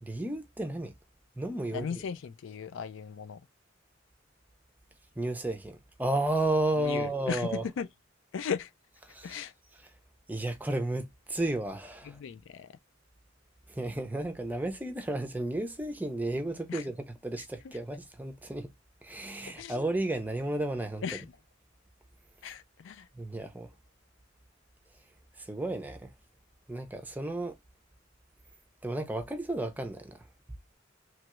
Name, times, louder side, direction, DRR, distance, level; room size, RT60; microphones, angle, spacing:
voice 1, 0.0-0.9 1.4-2.0 5.2-7.6 9.1-9.5 10.3-12.2 13.7-18.7 19.0-21.0 23.1-23.7 25.4-26.1 26.7-27.6 28.8-30.3, right 1 dB, 10° right, 0.5 m, -33 dB
voice 2, 1.7-3.4 6.8-7.9 8.3-8.7 9.2-9.5 12.1-12.7 16.7-16.8 19.6-19.7 21.0-21.3 22.4-23.1, left 6 dB, 75° left, 0.4 m, -37 dB
3.0 x 2.3 x 2.9 m
head